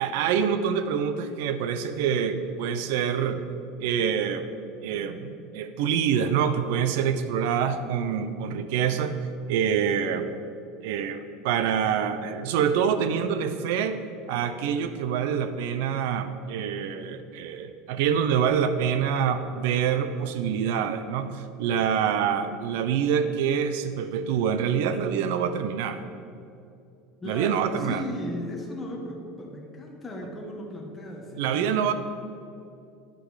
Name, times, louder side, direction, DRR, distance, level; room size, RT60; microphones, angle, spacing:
voice 1, 0.0-3.4 3.8-4.5 4.8-9.2 9.5-10.3 10.8-14.0 14.3-26.0 27.2-28.0 31.4-31.9, right 7 dB, 65° right, 10 dB, 0.6 m, -26 dB
voice 2, 27.2-31.9, left 1 dB, 10° left, -1 dB, 1.1 m, -36 dB
10.0 x 6.4 x 4.9 m, 2.5 s
supercardioid pair, 160°, 0 cm